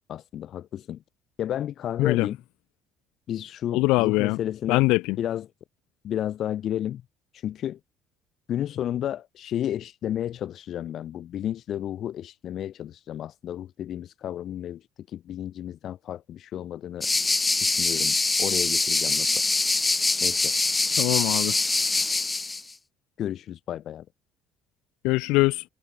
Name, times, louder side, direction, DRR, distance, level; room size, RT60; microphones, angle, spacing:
voice 1, 0.1-1.0 1.4-2.4 3.3-4.8 5.2-5.5 6.0-7.0 7.4-7.8 8.5-14.8 15.1-17.1 17.6-19.3 20.2-20.5 23.2-24.0, left 11 dB, 50° left, 0.7 m, -32 dB
voice 2, 3.7-4.4 4.7-5.2 21.0-21.6 25.0-25.6, left 23 dB, 85° left, 0.9 m, -22 dB
sound 1, 17.0-22.6, left 3 dB, 15° left, 0.9 m, -24 dB
cardioid pair, 130°, 0 cm